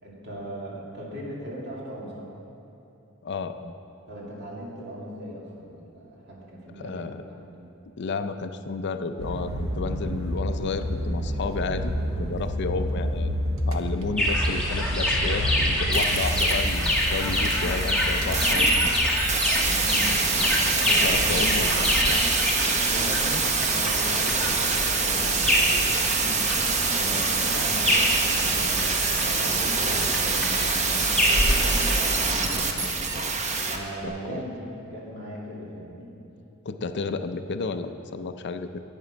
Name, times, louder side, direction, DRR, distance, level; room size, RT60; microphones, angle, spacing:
voice 1, 0.0-2.3 4.1-7.5 19.7-20.2 20.7-21.3 22.8-26.4 26.7-33.0 33.7-36.1, right 1 dB, 55° right, -4 dB, 2.5 m, -38 dB
voice 2, 3.2-3.7 6.8-7.2 8.0-13.3 13.7-18.9 21.0-22.2 34.0-34.4 36.6-38.8, left 4 dB, 55° left, 9 dB, 0.5 m, -32 dB
sound 1, 9.2-22.1, equal, 80° right, 0.9 m, -30 dB
sound 2, 14.2-32.3, left 1 dB, 5° left, 1.7 m, -26 dB
sound 3, 15.9-33.8 34.1-34.2, right 4 dB, 35° right, 0.8 m, -25 dB
11.0 x 8.9 x 5.1 m, 2.9 s
head